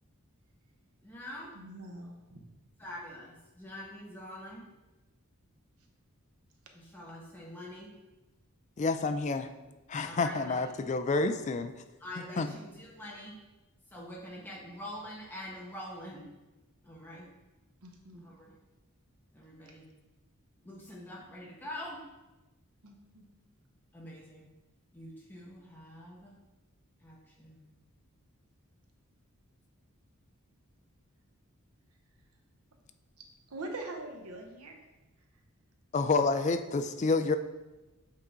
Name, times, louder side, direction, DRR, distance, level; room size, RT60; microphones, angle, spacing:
voice 1, 1.0-1.5 2.8-4.7 6.7-7.9 9.2-9.8 10.0-10.7 12.0-13.4 13.9-16.3 16.8-17.3 18.1-18.5 19.3-19.9 20.6-22.0 23.9-24.5 24.9-26.4 27.0-27.7, left 1 dB, 10° left, -4 dB, 1.1 m, -45 dB
voice 2, 1.5-2.4 17.8-18.2 22.8-23.2 33.5-34.8, right 2 dB, 85° right, 3 dB, 0.9 m, -43 dB
voice 3, 8.8-9.5 9.9-11.7 12.4-12.5 35.9-37.4, left 3 dB, 30° left, 9 dB, 0.3 m, -28 dB
7.5 x 3.8 x 3.7 m, 1.1 s
head